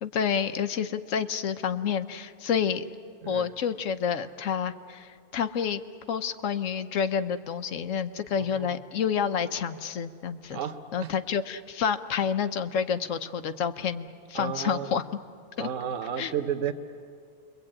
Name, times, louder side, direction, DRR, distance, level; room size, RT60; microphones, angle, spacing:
voice 1, 0.0-2.8 3.3-5.8 6.1-10.6 10.9-15.0 15.6-15.7 16.2-16.3, left 7 dB, 80° left, 10 dB, 1.2 m, -29 dB
voice 2, 8.4-8.7 10.5-11.1 14.3-15.0 15.6-16.7, right 8 dB, 75° right, 8 dB, 1.2 m, -33 dB
29.0 x 23.0 x 8.7 m, 2.3 s
omnidirectional pair, 1.3 m